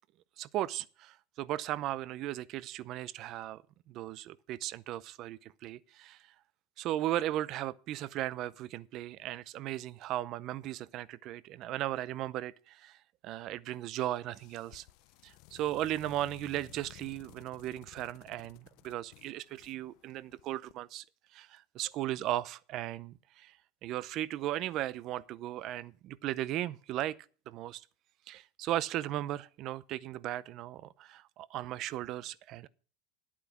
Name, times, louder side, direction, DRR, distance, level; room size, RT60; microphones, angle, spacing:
voice 1, 0.4-3.6 3.9-6.2 6.8-13.0 13.2-14.9 15.2-21.0 21.3-23.6 23.8-27.2 27.5-27.8 28.3-32.7, right 14 dB, 45° right, 0.6 m, -36 dB
sound 1, 14.3-20.7, left 18 dB, 60° left, 0.5 m, -56 dB
10.5 x 8.7 x 5.8 m
supercardioid pair, 140°, 0 cm